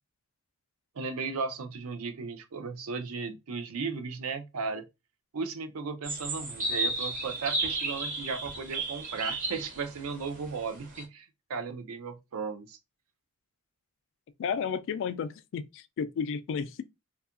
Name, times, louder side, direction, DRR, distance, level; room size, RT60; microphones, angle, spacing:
voice 1, 1.0-4.8 5.3-12.8, right 4 dB, 70° right, 0.5 m, -36 dB
sound 1, 6.0-11.0, right 2 dB, 40° right, 0.8 m, -33 dB
voice 2, 14.4-16.8, left 6 dB, 60° left, 0.3 m, -32 dB
2.7 x 2.3 x 2.4 m
head